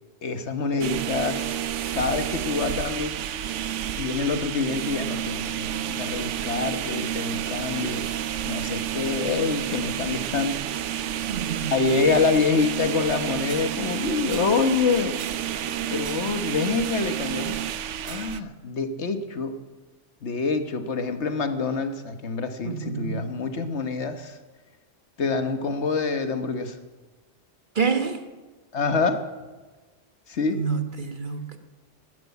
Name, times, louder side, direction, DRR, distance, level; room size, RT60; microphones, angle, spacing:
voice 1, 0.2-1.6 1.9-3.1 4.0-8.2 8.4-10.6 11.7-15.2 15.9-17.6 18.0-19.5 20.2-24.4 25.2-26.8 28.7-29.2 30.3-30.6, left 4 dB, 70° left, 8 dB, 1.4 m, -26 dB
sound 1, 0.8-18.4, right 10 dB, 80° right, 1.0 m, -30 dB
voice 2, 11.3-11.7 14.4-14.5 22.6-23.3 27.7-28.2 30.5-31.6, right 5 dB, 45° right, 7 dB, 1.3 m, -28 dB
12.5 x 11.5 x 9.4 m, 1.3 s
omnidirectional pair, 1.2 m